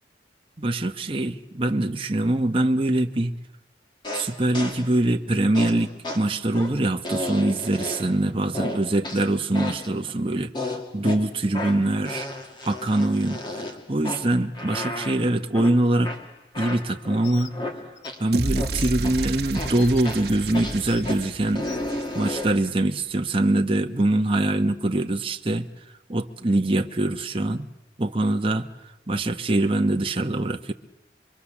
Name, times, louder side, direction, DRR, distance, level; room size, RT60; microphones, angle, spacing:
voice 1, 0.6-3.3 4.1-12.3 12.6-16.1 16.6-17.6 18.2-21.6 22.1-25.7 26.1-27.7 28.0-28.7 29.1-30.7, right 1 dB, 30° right, 5 dB, 0.9 m, -23 dB
sound 1, 4.0-4.9 5.5-8.2 8.5-10.0 10.5-18.3 18.5-19.2 19.5-22.7, left 1 dB, 25° left, 2.3 m, -33 dB
Bird, 17.2-17.5 18.0-18.1 18.8-18.9 19.8-20.0 20.9-21.0 21.7-21.8, left 11 dB, 90° left, 0.9 m, -42 dB
sound 2, 18.3-22.6, right 2 dB, 60° right, 1.2 m, -31 dB
25.0 x 24.5 x 7.2 m, 0.92 s
head